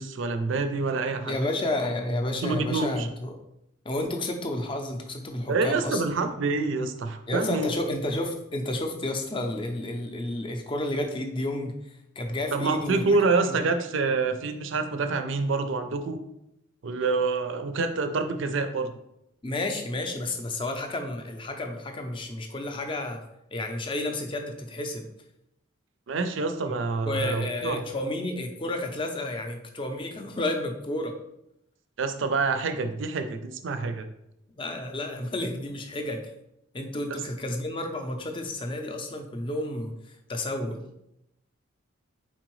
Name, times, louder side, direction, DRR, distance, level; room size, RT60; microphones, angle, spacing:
voice 1, 0.0-1.3 2.4-3.1 5.5-7.7 12.5-16.2 16.8-18.9 26.1-27.8 32.0-34.1 37.1-37.2, right 3 dB, 70° right, 8 dB, 0.4 m, -27 dB
voice 2, 1.2-3.4 3.8-6.0 7.3-13.0 13.4-13.6 19.4-23.2 23.5-25.1 27.0-31.1 34.6-36.2 36.7-39.9 40.3-40.8, left 1 dB, 25° left, 4 dB, 0.4 m, -31 dB
4.3 x 3.8 x 3.1 m, 0.82 s
head